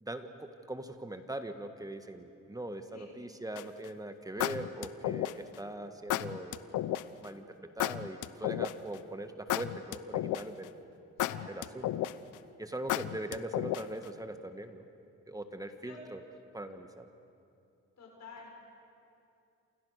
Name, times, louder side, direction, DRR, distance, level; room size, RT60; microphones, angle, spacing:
voice 1, 0.0-6.6 7.2-10.7 11.5-11.9 12.6-14.9 15.3-16.2 16.5-17.1, right 1 dB, 10° right, 8 dB, 1.8 m, -41 dB
sound 1, 3.6-3.9 4.4-5.6 6.1-7.0 7.8-9.0 9.5-10.6 11.2-12.3 12.9-14.0, left 14 dB, 80° left, 0.9 m, -33 dB
voice 2, 11.2-11.7 15.8-16.0 18.0-18.6, left 4 dB, 60° left, -1 dB, 6.9 m, -50 dB
28.5 x 28.0 x 6.7 m, 2.6 s
cardioid pair, 90°, 30 cm